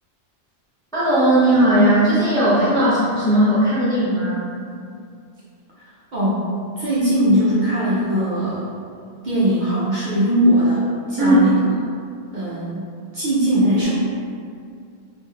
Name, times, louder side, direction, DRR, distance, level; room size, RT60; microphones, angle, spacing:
voice 1, 0.9-4.5 11.2-11.4, right 1 dB, 5° left, -10 dB, 0.4 m, -17 dB
voice 2, 6.1-8.7 9.2-11.5 12.3-12.9 13.1-13.9, equal, 55° right, -9 dB, 0.6 m, -20 dB
3.2 x 2.6 x 2.2 m, 2.3 s
omnidirectional pair, 1.2 m